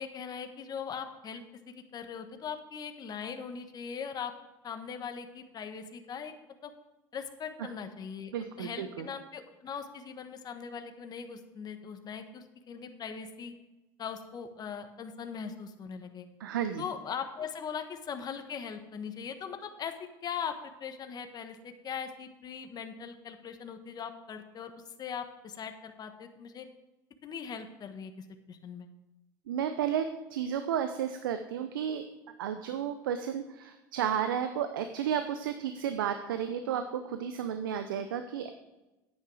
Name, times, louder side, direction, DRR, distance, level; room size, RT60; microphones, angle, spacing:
voice 1, 0.0-4.3 4.6-6.3 6.6-6.7 7.1-8.3 8.6-13.5 14.0-16.3 16.8-19.9 20.2-24.7 25.0-26.7 27.2-28.9, left 7 dB, 35° left, 7 dB, 1.3 m, -40 dB
voice 2, 8.3-9.1 16.4-16.9 29.5-32.1 32.4-38.5, right 9 dB, 85° right, 8 dB, 0.7 m, -32 dB
9.7 x 8.7 x 4.9 m, 1.0 s
hypercardioid pair, 90°, 11 cm